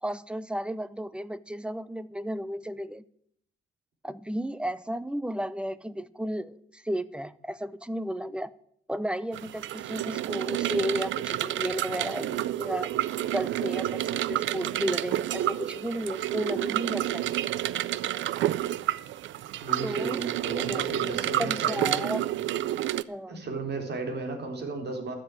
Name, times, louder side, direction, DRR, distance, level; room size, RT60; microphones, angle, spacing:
voice 1, 0.0-3.0 4.0-8.5 8.9-12.9 13.3-17.2 19.8-20.2 20.5-20.9 21.4-22.2 23.1-23.4, equal, 5° right, 0.7 m, -33 dB
sound 1, 9.3-23.0, right 13 dB, 75° right, 0.6 m, -30 dB
voice 2, 19.6-22.0 23.3-25.1, right 3 dB, 55° right, 3.8 m, -34 dB
13.0 x 7.6 x 8.5 m
cardioid pair, 90°, 20 cm